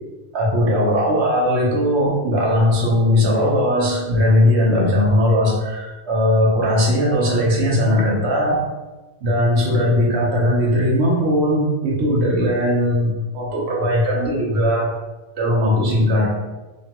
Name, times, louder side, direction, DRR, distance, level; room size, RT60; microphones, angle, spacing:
voice 1, 0.3-8.6 9.2-14.9 15.4-16.3, left 1 dB, 75° right, -3 dB, 1.0 m, -18 dB
3.0 x 2.2 x 2.8 m, 1.2 s
omnidirectional pair, 1.1 m